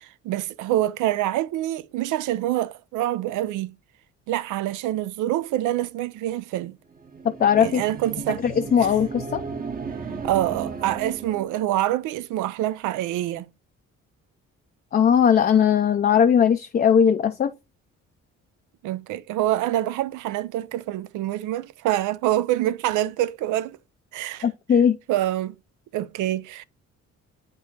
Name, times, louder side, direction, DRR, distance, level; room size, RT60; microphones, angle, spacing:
voice 1, 0.0-3.7 4.3-6.8 7.6-8.4 8.8-8.9 10.2-13.5 18.8-23.8 24.1-24.5 25.1-25.6 25.9-26.6, right 14 dB, 85° right, 0.5 m, -26 dB
sound 1, 6.9-11.6, right 5 dB, 30° right, 0.8 m, -35 dB
voice 2, 7.4-7.8 8.4-9.4 14.9-17.5 24.4-25.0, left 8 dB, 30° left, 0.4 m, -19 dB
8.3 x 4.5 x 2.8 m
cardioid pair, 90°, 30 cm